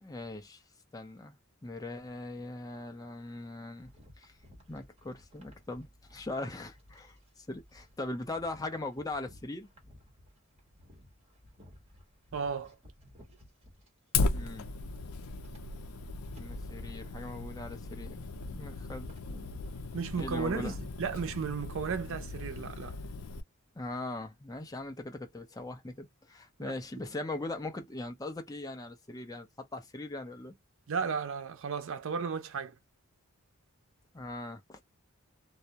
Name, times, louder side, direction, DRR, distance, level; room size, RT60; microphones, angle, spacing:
voice 1, 0.0-0.6 0.9-1.3 1.6-3.9 4.2-4.3 4.7-9.7 14.3-14.7 16.2-18.2 18.5-19.5 20.2-20.8 23.8-30.5 34.1-34.8, left 2 dB, 15° left, 0.6 m, -40 dB
sound 1, 3.8-13.9 14.3-21.6, left 1 dB, 30° right, 1.1 m, -58 dB
voice 2, 12.3-12.8 19.9-23.0 26.6-26.7 30.9-32.7, right 6 dB, 65° right, 0.5 m, -34 dB
Fire, 14.1-23.4, left 3 dB, 80° left, 0.5 m, -37 dB
2.2 x 2.0 x 2.7 m
head